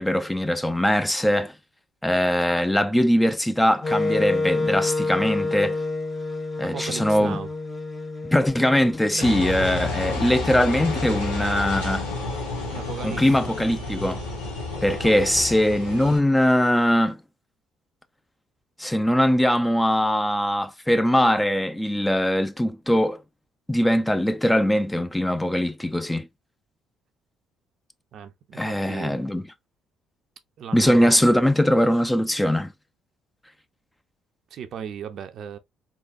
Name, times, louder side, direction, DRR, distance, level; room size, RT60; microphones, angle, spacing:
voice 1, 0.0-1.5 2.0-5.8 6.6-7.4 8.3-12.0 13.0-14.2 14.8-17.2 18.8-23.2 23.7-26.3 28.5-29.4 30.7-32.7, equal, 10° left, 0.6 m, -21 dB
Wind instrument woodwind instrument, 3.8-9.9, left 2 dB, 25° left, 1.0 m, -28 dB
voice 2, 6.6-7.5 9.2-9.3 12.7-13.3 28.1-29.2 30.6-31.2 34.5-35.6, right 8 dB, 55° right, 0.6 m, -36 dB
Engine, 9.2-16.2, left 3 dB, 80° left, 1.4 m, -30 dB
4.0 x 2.9 x 2.5 m
figure-of-eight pair, 50°, 0 cm